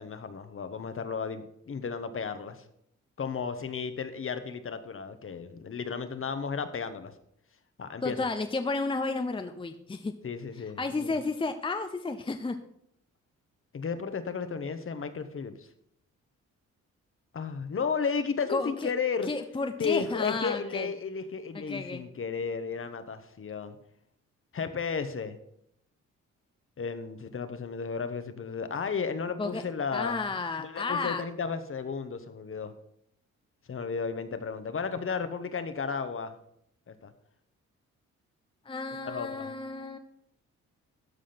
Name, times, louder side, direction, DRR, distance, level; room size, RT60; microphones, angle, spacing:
voice 1, 0.0-2.6 3.2-7.1 7.8-8.2 10.2-11.2 13.7-15.7 17.3-19.3 19.8-23.8 24.5-25.4 26.8-30.2 30.6-32.7 33.7-36.4 36.9-37.1 39.0-39.5, left 5 dB, 45° left, 10 dB, 1.2 m, -33 dB
voice 2, 8.0-10.1 10.8-12.6 18.5-18.9 19.3-20.9 21.5-22.0 29.4-29.6 29.9-31.2 38.6-40.0, left 3 dB, 15° left, 7 dB, 0.8 m, -32 dB
13.0 x 5.0 x 5.9 m, 0.73 s
cardioid pair, 75°, 30 cm